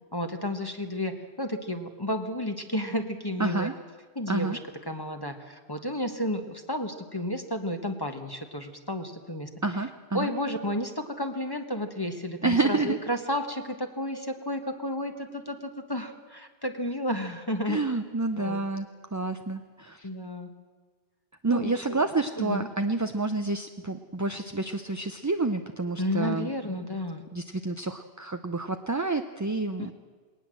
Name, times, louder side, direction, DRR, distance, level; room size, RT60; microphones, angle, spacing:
voice 1, 0.1-3.7 4.1-4.6 4.8-9.5 10.1-17.8 18.4-18.6 20.0-20.5 21.5-22.1 22.4-22.7 26.0-27.2 29.8-29.9, left 1 dB, 20° left, 6 dB, 1.3 m, -32 dB
voice 2, 3.4-3.7 4.3-4.6 9.6-10.3 12.4-13.0 17.7-20.1 21.4-26.5 27.3-29.9, right 3 dB, 20° right, 7 dB, 0.5 m, -29 dB
20.5 x 18.5 x 7.7 m, 1.5 s
omnidirectional pair, 1.1 m